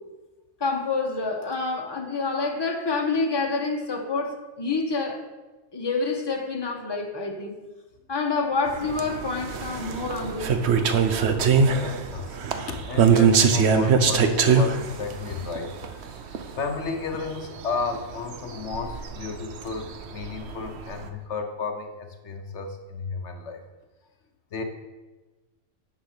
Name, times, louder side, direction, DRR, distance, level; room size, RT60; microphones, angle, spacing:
voice 1, 0.6-5.2 5.7-7.5 8.1-10.5, left 3 dB, 20° left, 2 dB, 1.2 m, -27 dB
sound 1, 8.7-21.1, right 6 dB, 65° right, 1.0 m, -23 dB
voice 2, 11.8-12.4 12.7-16.2 16.6-23.6 24.5-24.6, left 4 dB, 75° left, 5 dB, 1.2 m, -33 dB
9.8 x 6.3 x 5.8 m, 1.2 s
omnidirectional pair, 1.2 m